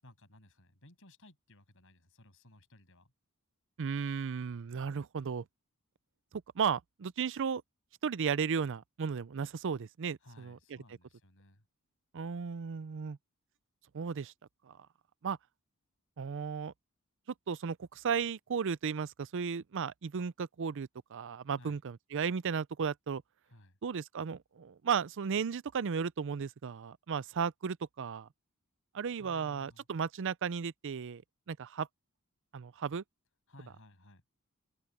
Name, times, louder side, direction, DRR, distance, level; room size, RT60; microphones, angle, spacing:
voice 1, 0.0-3.1 10.2-11.7 21.5-21.8 23.5-23.8 29.2-29.9 33.5-34.2, left 1 dB, 65° left, 7.3 m, -58 dB
voice 2, 3.8-5.4 6.6-7.6 8.0-10.6 12.1-13.2 13.9-14.3 14.7-14.8 15.2-15.4 16.2-16.7 17.5-23.2 23.8-28.3 28.9-31.2 31.5-31.9 32.5-33.0, right 6 dB, 55° right, 0.5 m, -35 dB
open air
head